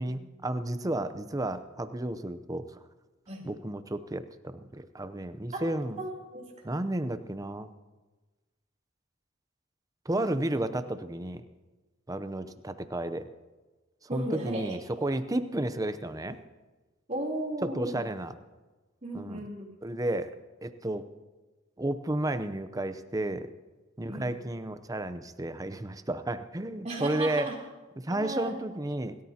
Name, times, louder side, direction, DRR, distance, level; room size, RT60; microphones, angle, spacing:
voice 1, 0.0-2.7 3.4-6.0 6.6-7.7 10.1-11.4 12.1-13.3 14.1-16.4 17.6-18.3 19.1-19.4 19.8-20.3 20.6-21.0 21.8-23.5 24.0-27.5 28.0-29.2, right 1 dB, 15° right, 11 dB, 0.7 m, -32 dB
voice 2, 6.0-6.7 10.1-10.3 14.1-14.6 17.1-18.1 19.0-19.6 24.1-24.3 26.8-27.6 28.1-28.6, right 1 dB, 35° right, -2 dB, 3.3 m, -35 dB
28.0 x 13.5 x 2.9 m, 1.2 s
head